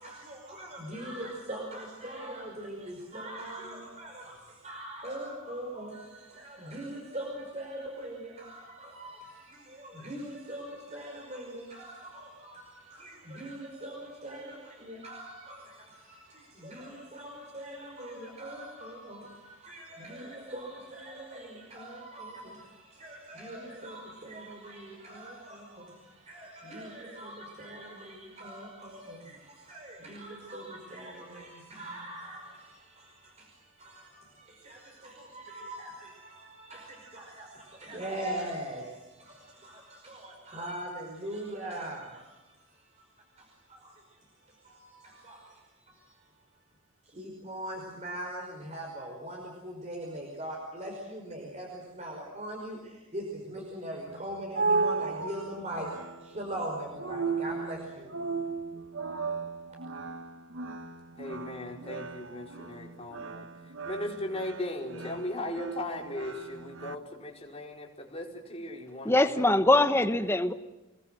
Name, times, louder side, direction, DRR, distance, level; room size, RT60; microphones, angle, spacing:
voice 1, 0.0-46.3 47.0-55.9 56.2-58.1, right 1 dB, 30° right, 5.3 m, -42 dB
sound 1, 54.1-66.9, right 4 dB, 65° right, 1.1 m, -35 dB
voice 2, 61.2-63.5 63.8-69.7, left 1 dB, 30° left, 5.0 m, -38 dB
voice 3, 69.0-70.5, left 1 dB, 10° left, 1.1 m, -23 dB
28.5 x 20.5 x 7.8 m
head